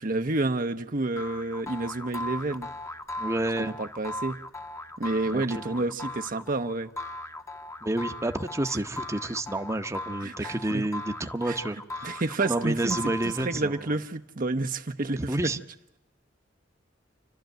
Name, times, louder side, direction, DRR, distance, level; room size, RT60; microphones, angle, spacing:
voice 1, 0.0-2.7 3.6-4.4 5.0-6.9 10.2-10.9 11.4-11.6 12.0-13.0 13.2-15.5, right 2 dB, 50° right, 0.8 m, -29 dB
sound 1, 1.2-13.7, left 1 dB, 15° left, 0.9 m, -38 dB
voice 2, 3.2-3.7 5.3-5.4 7.8-12.2 12.5-13.7 15.2-15.6, right 1 dB, 15° right, 0.8 m, -29 dB
29.0 x 13.0 x 9.1 m
head